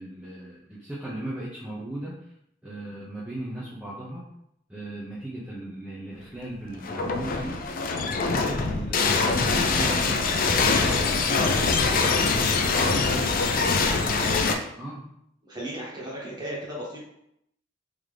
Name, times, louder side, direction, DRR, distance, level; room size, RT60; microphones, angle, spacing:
voice 1, 0.0-2.3 2.6-4.2 4.7-7.6 8.0-13.0 13.6-15.0, right 1 dB, 10° right, -9 dB, 0.7 m, -37 dB
sound 1, 6.8-14.6, left 4 dB, 50° left, 0.4 m, -23 dB
voice 2, 13.3-13.9 15.4-17.0, right 1 dB, 25° right, -5 dB, 1.3 m, -36 dB
3.8 x 3.0 x 3.3 m, 0.77 s
head